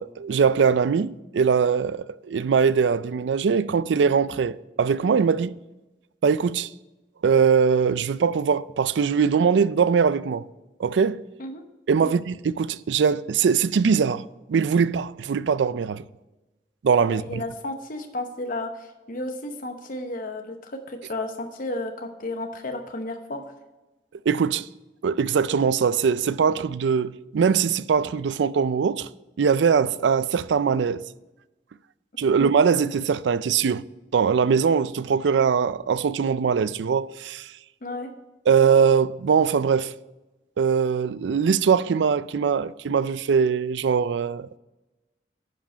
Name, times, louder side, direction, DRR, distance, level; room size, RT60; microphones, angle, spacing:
voice 1, 0.0-5.6 6.2-6.7 7.2-10.5 10.8-11.2 11.9-14.2 14.5-16.0 16.8-17.4 24.3-24.7 25.0-29.1 29.4-31.0 32.2-33.8 34.1-37.5 38.5-39.9 40.6-44.6, right 6 dB, 85° right, 0.4 m, -21 dB
voice 2, 17.0-23.4 32.2-32.5 37.8-38.1, left 2 dB, 50° left, 0.9 m, -33 dB
11.0 x 5.0 x 5.1 m
head